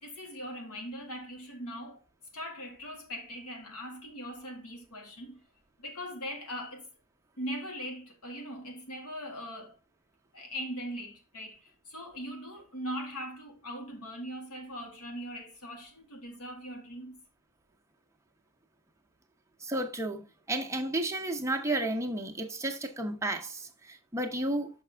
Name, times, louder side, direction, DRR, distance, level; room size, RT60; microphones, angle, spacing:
voice 1, 0.0-2.0 2.3-5.4 5.8-6.9 7.4-9.8 10.3-17.2, equal, 85° left, 1.8 m, -40 dB
voice 2, 19.6-20.2 20.5-24.7, right 1 dB, 15° right, 0.8 m, -32 dB
6.0 x 5.8 x 3.4 m
head